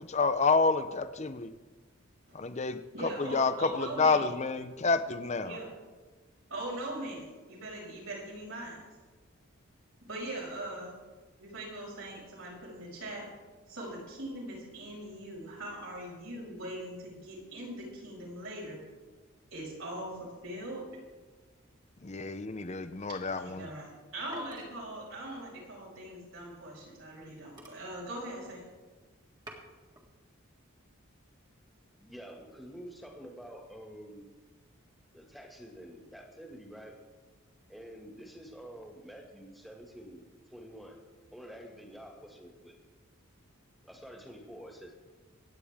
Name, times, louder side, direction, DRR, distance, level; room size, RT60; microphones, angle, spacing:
voice 1, 0.0-1.5 2.3-5.6 22.0-23.7, left 4 dB, 30° left, 11 dB, 0.6 m, -29 dB
voice 2, 2.9-4.3 5.4-5.7 6.5-8.8 10.1-10.9 11.4-13.3 13.7-18.8 19.5-20.8 23.4-28.6, right 1 dB, 75° right, -4 dB, 5.4 m, -41 dB
sound 1, 24.3-26.8 27.2-27.3 27.4-28.8 29.2-30.1 30.5-31.0, right 2 dB, 20° right, 1.8 m, -53 dB
voice 3, 32.0-34.3 35.1-36.9 37.7-41.0 41.3-42.7 43.8-44.9, equal, ahead, 0 dB, 1.9 m, -48 dB
25.5 x 9.1 x 3.6 m, 1.3 s
head